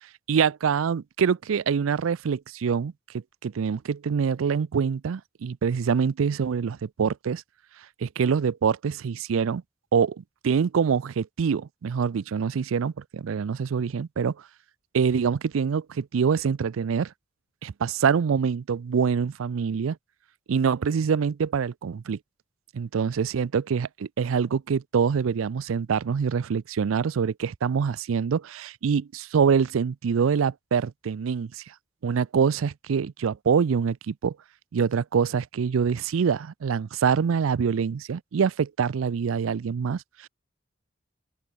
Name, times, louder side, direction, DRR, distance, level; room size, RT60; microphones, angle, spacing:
voice 1, 0.3-2.9 3.4-7.4 8.0-9.6 9.9-14.3 14.9-17.1 17.6-20.0 20.5-22.2 22.7-31.6 32.0-34.4 34.7-40.3, right 6 dB, 85° right, 0.4 m, -25 dB
open air
head